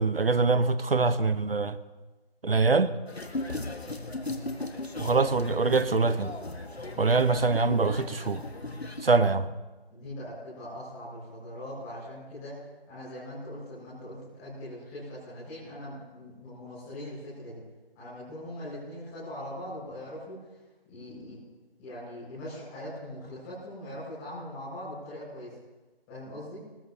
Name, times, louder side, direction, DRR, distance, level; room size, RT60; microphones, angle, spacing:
voice 1, 0.0-1.8 2.4-2.9 5.0-6.3 7.0-8.4 9.0-9.5, right 4 dB, 65° right, 1.1 m, -24 dB
sound 1, 3.1-9.0, left 2 dB, 85° left, 1.9 m, -37 dB
voice 2, 9.9-17.6 17.9-20.4 20.9-21.4 21.8-25.5 26.1-26.6, left 1 dB, 10° left, 6.0 m, -41 dB
22.5 x 20.0 x 3.0 m
figure-of-eight pair, 165°, 31 cm